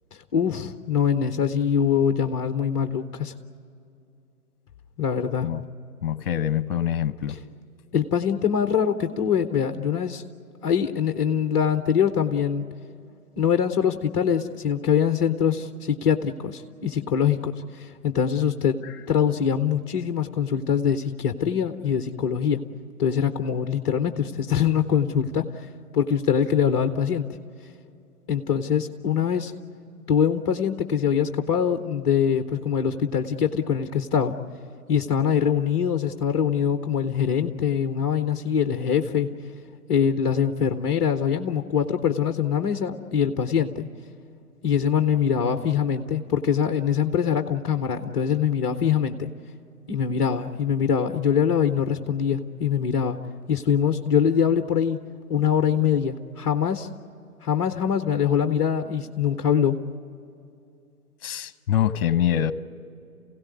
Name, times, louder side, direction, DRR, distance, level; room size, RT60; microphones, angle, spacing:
voice 1, 0.3-3.3 5.0-5.5 7.3-7.4 7.9-10.2 10.6-12.6 13.4-18.8 19.1-22.6 23.0-25.4 25.9-27.2 28.3-29.5 30.1-34.4 34.9-39.3 39.9-43.9 44.6-49.3 49.9-53.2 53.5-55.0 55.3-56.9 57.4-59.8, left 8 dB, 20° left, 7 dB, 0.7 m, -23 dB
voice 2, 6.0-7.4 61.2-62.5, left 10 dB, 40° left, 13 dB, 1.0 m, -24 dB
28.0 x 16.5 x 9.5 m, 2.6 s
figure-of-eight pair, 135°, 45 cm